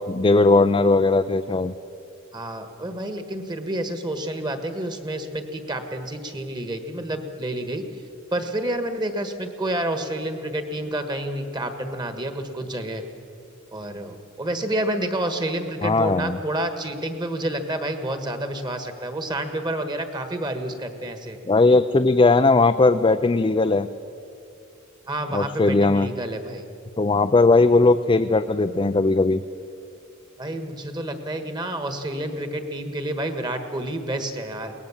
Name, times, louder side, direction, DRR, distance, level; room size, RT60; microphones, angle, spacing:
voice 1, 0.1-1.7 15.8-16.4 21.5-23.9 25.3-26.1 27.0-29.4, left 3 dB, 25° left, 8 dB, 0.4 m, -18 dB
voice 2, 2.3-7.8 8.3-13.0 13.7-21.4 25.1-26.6 30.4-34.7, right 1 dB, 20° right, 8 dB, 1.5 m, -29 dB
22.5 x 18.5 x 7.2 m, 2.6 s
head